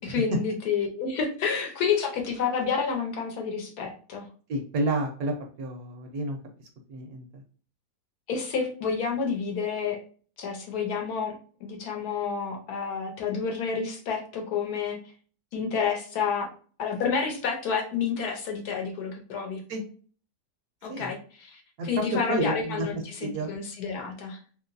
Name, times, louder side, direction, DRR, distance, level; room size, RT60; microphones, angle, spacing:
voice 1, 0.0-4.3 8.3-10.0 10.4-11.4 11.6-15.0 15.5-16.5 16.8-19.6 20.8-24.4, left 6 dB, 70° left, 1 dB, 1.2 m, -29 dB
voice 2, 4.5-6.4 6.9-7.2 19.7-19.8 20.9-21.1 21.8-22.0 22.3-22.9 23.2-23.5, right 2 dB, 70° right, 3 dB, 1.0 m, -30 dB
3.0 x 2.9 x 2.5 m, 0.42 s
omnidirectional pair, 1.8 m